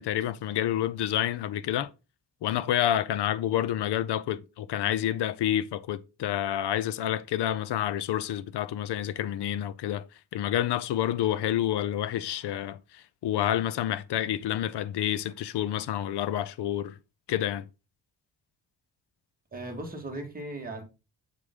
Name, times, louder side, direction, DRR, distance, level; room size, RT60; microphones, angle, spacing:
voice 1, 0.0-1.9 2.4-10.0 10.3-12.8 13.2-16.9 17.3-17.6, left 11 dB, 80° left, 0.6 m, -28 dB
voice 2, 19.5-20.8, right 1 dB, 20° right, 1.6 m, -37 dB
7.5 x 4.9 x 3.6 m
wide cardioid pair, 165°, 40 cm